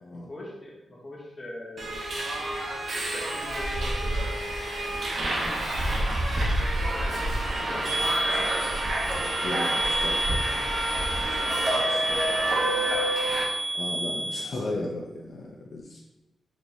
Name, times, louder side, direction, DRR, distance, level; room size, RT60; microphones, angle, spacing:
voice 1, 0.1-1.9 2.9-5.5 5.9-8.1 11.8-13.1, left 1 dB, 30° left, -4 dB, 1.0 m, -43 dB
Subway metro underground, 1.8-13.4, right 1 dB, 55° right, 0.7 m, -28 dB
voice 2, 7.0-8.5 9.4-10.4 11.0-12.1 13.7-16.0, left 2 dB, 65° left, -1 dB, 0.4 m, -37 dB
sound 1, 7.9-14.4, right 1 dB, 10° right, 0.9 m, -30 dB
4.3 x 3.0 x 2.6 m, 1.1 s
wide cardioid pair, 130°, 0 cm